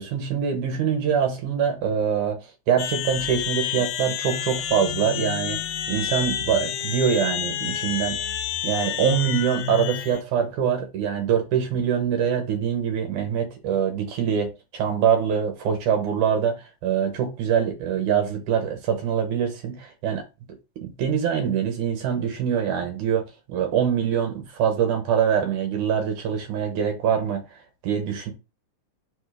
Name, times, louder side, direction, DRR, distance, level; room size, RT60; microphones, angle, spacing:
voice 1, 0.0-8.2 8.6-20.2 20.8-23.2 23.5-28.3, right 8 dB, 70° right, 2.4 m, -24 dB
sound 1, 2.8-10.2, left 10 dB, 90° left, 2.3 m, -29 dB
5.5 x 3.6 x 4.8 m
omnidirectional pair, 4.0 m